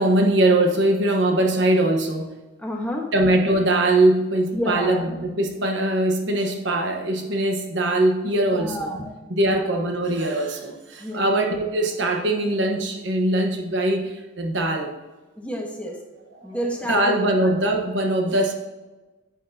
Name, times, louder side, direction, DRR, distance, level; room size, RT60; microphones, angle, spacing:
voice 1, 0.0-2.3 3.1-8.9 9.3-14.9 16.3-16.5 16.9-18.5, right 1 dB, 70° right, 2 dB, 1.2 m, -21 dB
voice 2, 2.6-3.1 4.5-5.1 8.6-9.1 9.5-9.7 11.0-11.3 15.4-16.0 16.4-17.5, equal, 5° left, 0 dB, 1.3 m, -29 dB
10.0 x 8.6 x 2.8 m, 1.2 s
head